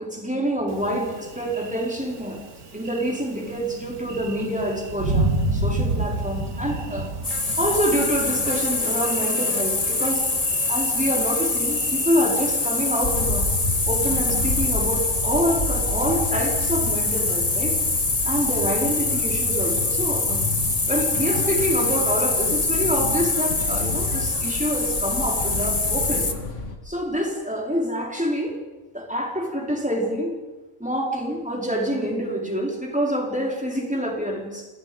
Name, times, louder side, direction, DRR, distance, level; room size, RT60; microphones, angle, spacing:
voice 1, 0.0-2.4 2.7-7.1 7.6-10.3 10.7-13.5 13.9-17.8 18.2-20.4 20.9-26.3 26.8-28.6 28.9-30.4 30.8-34.7, equal, 5° right, -1 dB, 4.9 m, -26 dB
Thunder, 0.7-13.0, right 2 dB, 90° right, 2.8 m, -31 dB
sound 1, 7.2-26.3, left 3 dB, 25° left, 1.7 m, -24 dB
sound 2, 13.0-26.7, left 2 dB, 55° left, 2.7 m, -31 dB
29.0 x 28.0 x 5.4 m, 1.2 s
omnidirectional pair, 1.5 m